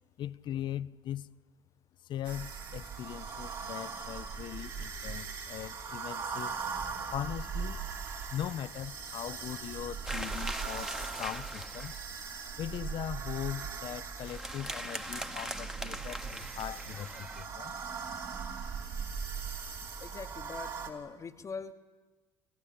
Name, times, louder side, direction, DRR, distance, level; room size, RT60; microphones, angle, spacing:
voice 1, 0.2-1.3 2.0-6.5 7.1-7.9 8.3-11.9 12.6-17.7, left 12 dB, 55° left, 0.6 m, -40 dB
sound 1, 2.2-20.9, right 6 dB, 55° right, 3.2 m, -40 dB
sound 2, 10.0-12.1 14.2-17.4, equal, 5° right, 1.2 m, -41 dB
voice 2, 20.0-21.7, left 5 dB, 35° left, 1.1 m, -42 dB
28.5 x 14.5 x 8.5 m
supercardioid pair, 80°, 9 cm